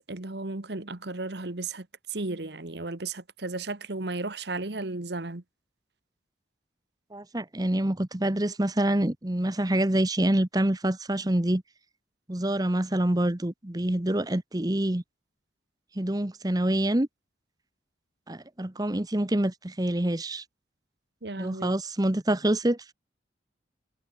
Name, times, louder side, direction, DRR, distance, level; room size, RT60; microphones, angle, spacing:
voice 1, 0.1-5.4 21.2-21.7, right 3 dB, 65° right, 1.4 m, -34 dB
voice 2, 7.1-11.6 12.3-15.0 15.9-17.1 18.3-20.4 21.4-22.9, right 1 dB, 20° right, 1.0 m, -26 dB
head